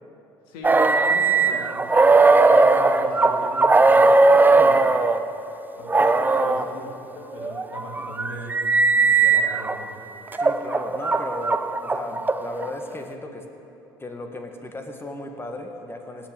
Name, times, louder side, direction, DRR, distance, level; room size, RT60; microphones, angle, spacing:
voice 1, 0.5-4.9 5.8-6.1 6.4-6.8 7.1-8.6 8.9-10.0, left 1 dB, 75° left, 0 dB, 2.3 m, -39 dB
sound 1, 0.6-5.2 5.9-6.7 7.4-9.8 10.3-12.7, right 3 dB, 15° right, 0.7 m, -18 dB
voice 2, 6.0-6.7 10.4-13.4 14.0-16.3, left 2 dB, 20° left, 4 dB, 1.9 m, -35 dB
17.0 x 6.1 x 8.7 m, 2.9 s
hypercardioid pair, 60°, 12 cm